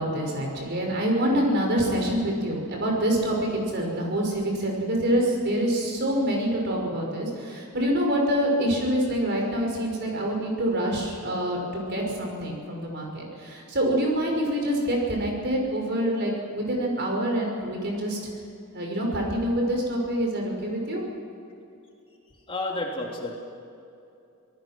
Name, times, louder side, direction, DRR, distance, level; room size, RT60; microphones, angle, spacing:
voice 1, 0.0-18.2 18.7-21.0, right 1 dB, 50° right, 0 dB, 6.0 m, -26 dB
voice 2, 22.5-23.3, left 2 dB, 25° left, -1 dB, 2.9 m, -30 dB
27.0 x 19.0 x 6.2 m, 2.6 s
head